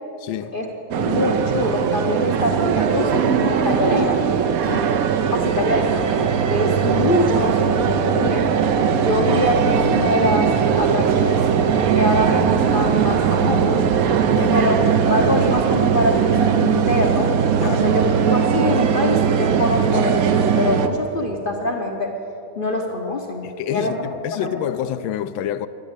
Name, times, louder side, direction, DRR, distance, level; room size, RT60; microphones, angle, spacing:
voice 1, 0.2-0.5 4.6-5.0 14.3-14.6 17.5-18.0 23.4-25.7, left 11 dB, 80° left, 1.3 m, -28 dB
sound 1, 0.9-20.9, right 7 dB, 65° right, 0.9 m, -19 dB
voice 2, 1.0-4.2 5.3-6.1 6.5-8.5 9.0-11.4 11.9-13.8 14.5-14.8 15.1-17.3 17.7-22.1 22.6-24.5, left 1 dB, 45° left, 0.7 m, -24 dB
12.0 x 10.5 x 8.1 m
omnidirectional pair, 2.2 m